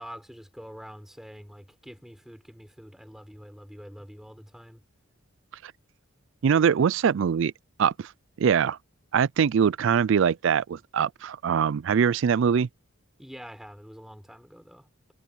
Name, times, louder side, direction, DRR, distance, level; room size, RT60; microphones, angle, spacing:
voice 1, 0.0-4.8 13.2-15.1, equal, ahead, 4.0 m, -46 dB
voice 2, 6.4-7.5 7.8-8.1 8.4-8.8 9.1-12.7, right 7 dB, 65° right, 0.4 m, -23 dB
head